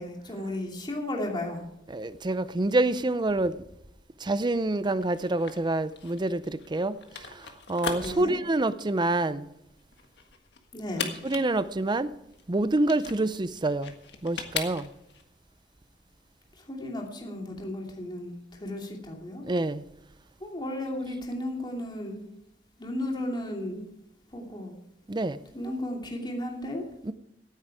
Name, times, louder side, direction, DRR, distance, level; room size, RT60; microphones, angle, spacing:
voice 1, 0.0-1.6 8.0-8.4 10.7-11.1 16.6-19.4 20.4-22.2 22.8-23.8 24.3-24.7 25.5-26.8, left 1 dB, 25° left, 2.8 m, -34 dB
voice 2, 1.9-3.6 4.2-9.5 11.2-12.1 12.5-13.9 14.2-14.9 19.4-19.8 25.1-25.4 27.0-27.1, right 2 dB, 25° right, 0.5 m, -27 dB
sound 1, 5.0-15.2, left 6 dB, 70° left, 1.7 m, -39 dB
16.5 x 9.3 x 4.8 m
head